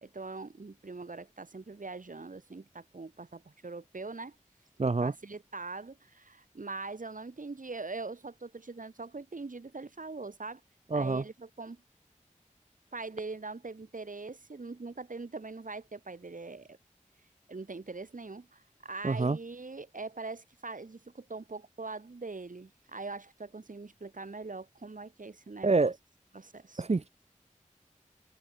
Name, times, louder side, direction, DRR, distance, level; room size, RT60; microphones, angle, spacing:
voice 1, 0.0-4.4 5.0-10.6 10.9-11.8 12.9-16.8 17.5-25.9 26.3-26.8, right 3 dB, 85° right, 3.8 m, -42 dB
voice 2, 4.8-5.1 10.9-11.2 19.0-19.4 25.6-25.9 26.8-27.2, right 3 dB, 55° right, 0.8 m, -27 dB
wide cardioid pair, 50°, 13 cm